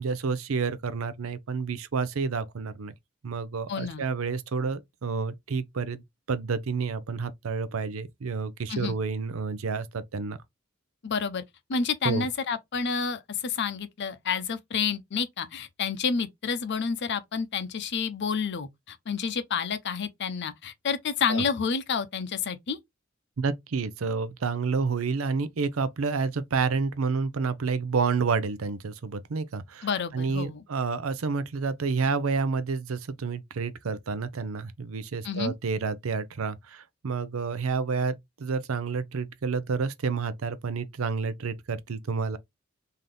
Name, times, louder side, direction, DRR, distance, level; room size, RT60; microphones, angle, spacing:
voice 1, 0.0-2.9 3.2-10.4 12.0-12.3 21.3-21.4 23.4-29.9 30.1-42.4, right 5 dB, 80° right, 0.6 m, -29 dB
voice 2, 3.7-4.1 8.7-9.0 11.0-11.4 11.7-22.8 29.8-30.6 35.2-35.5, left 6 dB, 55° left, 0.6 m, -29 dB
3.8 x 2.8 x 3.2 m
head